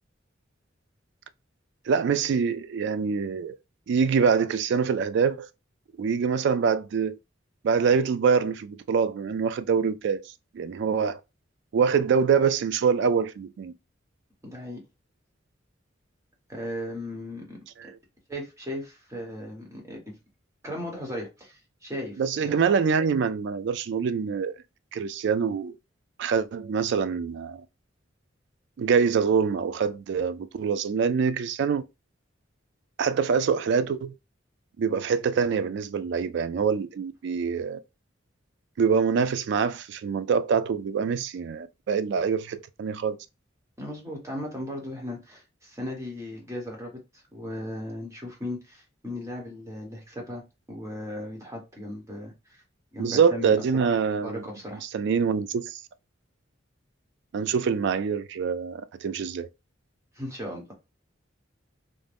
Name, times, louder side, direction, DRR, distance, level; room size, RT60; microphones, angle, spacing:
voice 1, 1.9-3.6 3.9-5.5 6.0-7.2 7.6-10.2 10.5-11.2 11.7-13.7 17.8-17.9 22.2-24.5 24.9-25.8 26.2-27.6 28.8-31.8 33.0-34.1 34.8-37.8 38.8-43.2 53.0-54.4 54.8-55.8 57.3-59.5, right 6 dB, 65° right, 0.3 m, -25 dB
voice 2, 14.4-14.8 16.5-17.9 18.3-20.1 20.6-22.6 43.8-47.0 47.3-50.4 50.7-52.6 52.9-53.5 54.2-54.8 60.1-60.7, left 1 dB, 15° right, 1.0 m, -37 dB
2.6 x 2.1 x 3.3 m
head